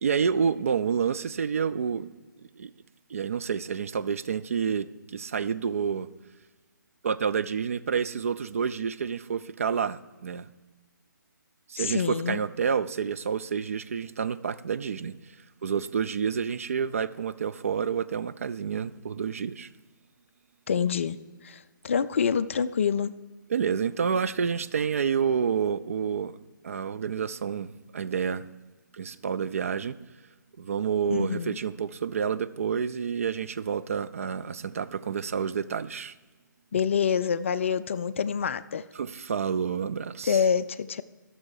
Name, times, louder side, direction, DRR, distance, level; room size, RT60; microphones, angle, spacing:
voice 1, 0.0-2.1 2.6-2.7 3.1-6.1 7.0-10.5 11.7-15.2 15.6-19.7 23.5-26.4 26.6-28.5 28.9-30.0 30.6-36.1 39.0-40.4, right 7 dB, 45° right, 0.4 m, -29 dB
voice 2, 11.8-12.4 20.7-21.2 21.4-23.1 31.1-31.6 36.7-38.8 40.3-41.0, left 7 dB, 40° left, 0.4 m, -26 dB
13.0 x 6.9 x 4.7 m
figure-of-eight pair, 140°, 11 cm